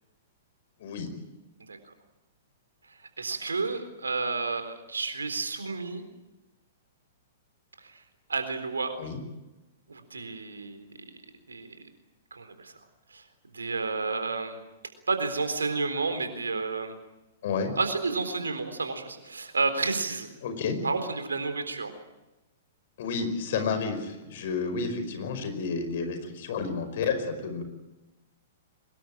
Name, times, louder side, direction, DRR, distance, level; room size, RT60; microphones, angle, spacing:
voice 1, 3.2-6.1 7.8-8.0 8.3-8.9 9.9-10.8 11.5-11.7 12.3-12.7 13.1-13.2 13.5-14.6 15.1-16.9 17.8-20.3 20.8-21.9, right 4 dB, 80° right, 9 dB, 3.9 m, -31 dB
voice 2, 17.4-17.7 20.4-20.8 23.0-27.6, left 5 dB, 55° left, 8 dB, 5.2 m, -30 dB
24.0 x 20.5 x 8.9 m, 1.0 s
figure-of-eight pair, 110°, 0 cm